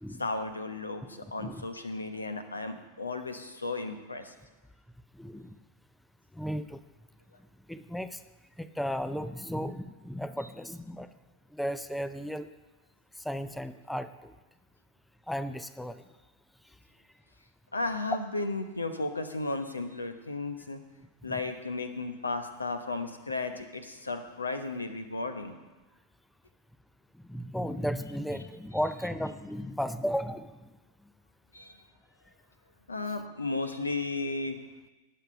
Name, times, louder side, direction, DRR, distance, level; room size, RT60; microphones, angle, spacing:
voice 1, 0.2-4.3 17.7-20.8 21.2-25.5 31.5-31.8 32.9-34.6, left 3 dB, 80° left, 8 dB, 1.1 m, -34 dB
voice 2, 5.1-5.6 6.3-6.8 7.7-8.2 8.6-11.1 11.5-12.5 13.2-14.3 15.3-16.0 21.2-21.3 27.2-30.7, equal, 5° left, 12 dB, 0.5 m, -35 dB
19.0 x 6.7 x 5.5 m, 1.2 s
figure-of-eight pair, 90°, 0 cm